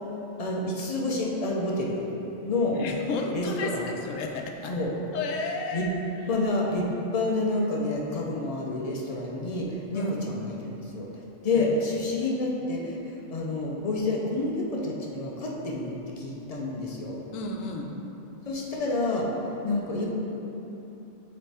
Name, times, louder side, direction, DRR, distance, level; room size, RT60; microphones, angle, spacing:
voice 1, 0.4-2.1 2.4-2.8 3.3-3.9 4.7-4.9 5.7-5.9 6.3-11.1 11.4-13.0 13.3-17.2 18.5-19.3 19.6-20.1, left 2 dB, 40° left, -2 dB, 0.6 m, -28 dB
voice 2, 2.7-4.7 5.1-5.9 9.9-10.3 11.5-11.6 12.2-12.3 17.3-17.9, left 3 dB, 80° left, 2 dB, 1.0 m, -33 dB
6.6 x 4.3 x 3.5 m, 3.0 s
omnidirectional pair, 1.3 m